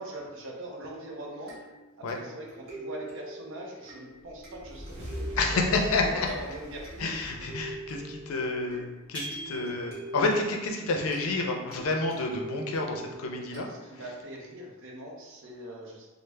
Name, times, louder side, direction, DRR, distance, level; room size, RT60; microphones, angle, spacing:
voice 1, 0.0-1.6 2.0-5.4 5.8-7.1 13.5-16.1, right 1 dB, 60° right, -1 dB, 0.6 m, -42 dB
sound 1, 1.5-14.2, right 2 dB, 45° right, 1.4 m, -45 dB
sound 2, 4.2-8.8, equal, 85° right, 1.0 m, -41 dB
voice 2, 5.4-6.3 7.0-13.7, left 3 dB, 75° left, 2 dB, 0.5 m, -29 dB
sound 3, 9.1-10.2, right 1 dB, 20° right, 1.5 m, -40 dB
3.2 x 2.0 x 3.2 m, 1.1 s
head